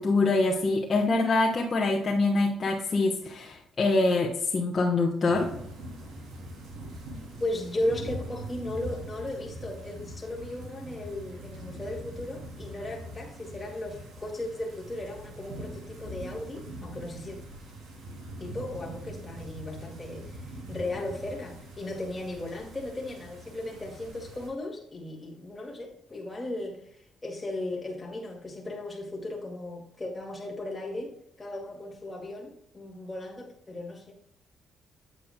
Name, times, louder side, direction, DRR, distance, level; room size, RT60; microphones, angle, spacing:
voice 1, 0.0-5.5, left 3 dB, 40° left, 1.1 m, -25 dB
sound 1, 5.3-24.5, right 1 dB, 80° right, 2.9 m, -42 dB
voice 2, 7.4-17.4 18.4-20.4 20.7-26.8 27.2-31.1 31.4-34.1, left 1 dB, 20° left, 2.1 m, -36 dB
8.5 x 8.1 x 2.2 m
cardioid pair, 90°, 0 cm